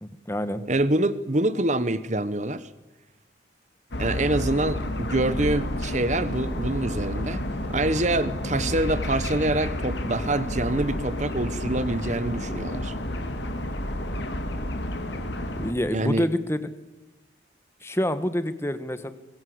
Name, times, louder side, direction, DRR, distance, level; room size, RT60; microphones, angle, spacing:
voice 1, 0.0-0.6 15.4-16.7 17.8-19.1, equal, 15° left, 11 dB, 1.4 m, -27 dB
voice 2, 0.7-2.7 4.0-7.4 7.7-12.9 15.9-16.2, right 2 dB, 40° right, 14 dB, 1.2 m, -25 dB
sound 1, 3.9-15.7, left 1 dB, 70° left, 2.6 m, -30 dB
25.0 x 21.5 x 7.9 m, 1.0 s
head